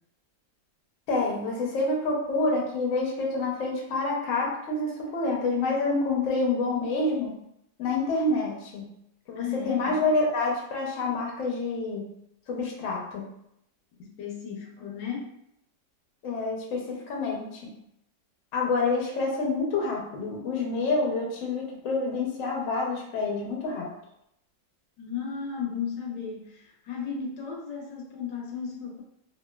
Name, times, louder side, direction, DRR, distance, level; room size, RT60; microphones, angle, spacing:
voice 1, 1.1-7.4 7.8-8.8 9.3-12.1 12.5-13.3 16.2-17.6 18.5-23.9, left 3 dB, 65° left, -1 dB, 0.9 m, -27 dB
voice 2, 9.4-10.0 14.0-15.3 25.0-29.0, left 6 dB, 80° left, 0 dB, 1.2 m, -34 dB
2.9 x 2.4 x 2.2 m, 0.77 s
omnidirectional pair, 1.9 m